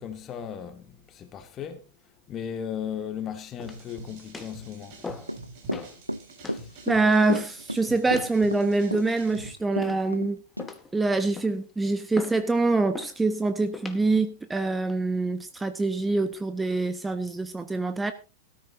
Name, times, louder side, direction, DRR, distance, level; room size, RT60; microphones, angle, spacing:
voice 1, 0.0-1.8 2.3-5.0 5.7-5.9 6.4-6.7, left 8 dB, 30° left, 1.9 m, -36 dB
sound 1, 3.6-4.0 4.3-4.6 5.0-5.4 5.7-6.0 6.4-6.6 7.3-7.6 8.1-8.4 8.9-9.4 9.8-10.2 10.6-10.9 11.4-11.7 12.2-12.4 12.9-13.2 13.7-14.0 14.6-15.0, left 4 dB, 10° left, 1.9 m, -39 dB
sound 2, 3.6-9.5, right 3 dB, 45° right, 7.3 m, -46 dB
Run / Walk footsteps, 5.2-10.3 10.6-10.7, equal, 90° right, 0.6 m, -32 dB
voice 2, 6.9-10.4 10.9-18.1, right 3 dB, 10° right, 1.0 m, -25 dB
18.0 x 13.5 x 2.7 m
figure-of-eight pair, 90°, 0 cm